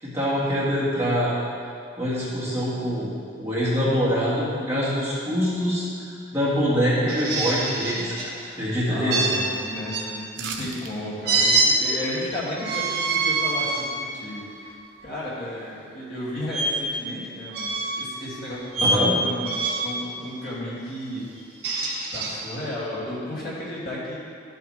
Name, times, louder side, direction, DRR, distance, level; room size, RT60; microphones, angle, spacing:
voice 1, 0.0-1.3 2.0-3.1 3.4-5.9 6.3-8.3 8.6-9.3 18.8-19.2, equal, 15° right, -9 dB, 2.0 m, -24 dB
sound 1, 7.1-8.3 9.1-10.1 11.2-11.7 12.5-13.9 14.5-14.7 16.5-16.7 17.5-18.1 18.7-19.0 19.4-19.9 21.4-22.3, right 3 dB, 55° right, 1.9 m, -25 dB
voice 2, 8.9-14.7 15.0-19.6 19.8-21.3 22.1-24.2, left 1 dB, 45° left, -8 dB, 2.6 m, -33 dB
sound 2, 10.3-10.9 11.3-11.4, right 5 dB, 70° right, 0.9 m, -34 dB
12.5 x 8.1 x 3.5 m, 2.5 s
head